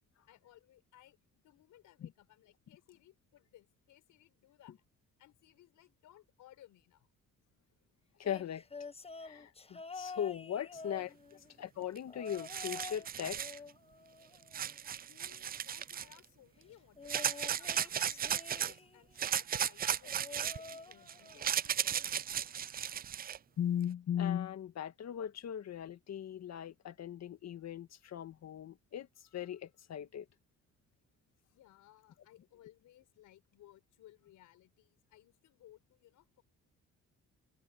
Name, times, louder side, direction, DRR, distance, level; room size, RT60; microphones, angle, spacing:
voice 1, 0.3-4.9 5.2-7.1 9.1-9.2 10.7-10.8 11.3-11.4 15.1-22.4 31.5-36.4, left 13 dB, 85° left, 4.7 m, -62 dB
voice 2, 8.2-8.6 9.2-11.2 11.6-13.6 23.6-29.1 29.3-30.3, left 9 dB, 60° left, 1.8 m, -38 dB
sound 1, 8.2-11.5 12.1-13.1 13.4-14.9 17.0-19.1 20.0-21.5 21.8-22.2 23.3-23.4, left 4 dB, 20° left, 1.0 m, -49 dB
sound 2, 12.0-12.1 12.3-13.6 14.5-16.2 17.1-18.7 19.2-23.4, right 9 dB, 30° right, 0.4 m, -35 dB
cardioid pair, 90°, 30 cm